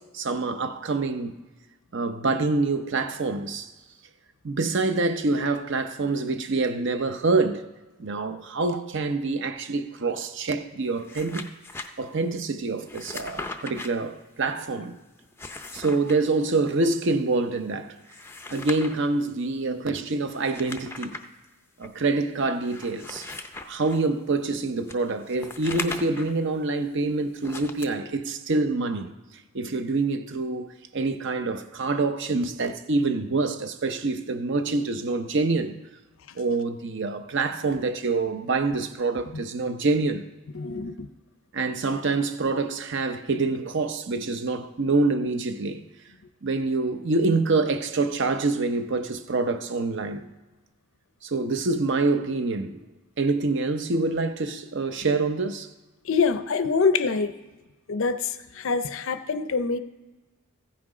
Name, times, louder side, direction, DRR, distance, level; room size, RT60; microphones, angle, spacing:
voice 1, 0.0-1.3 1.9-3.7 4.4-7.7 8.0-11.5 12.0-15.0 15.7-17.9 18.5-21.2 21.8-23.3 23.7-29.1 29.5-30.7 30.9-35.7 36.4-40.2 41.5-45.8 46.4-50.3 51.2-52.9 53.2-55.7, right 3 dB, 55° right, 0.6 m, -26 dB
sound 1, 10.9-11.9 12.9-13.9 15.2-16.2 18.0-19.1 20.3-21.3 21.8-21.9 22.6-24.0 24.9-26.4 27.4-27.9, left 3 dB, 10° left, 0.5 m, -38 dB
voice 2, 40.5-41.1 56.0-57.3 57.9-59.8, left 5 dB, 60° left, 0.5 m, -25 dB
15.0 x 6.0 x 4.9 m
head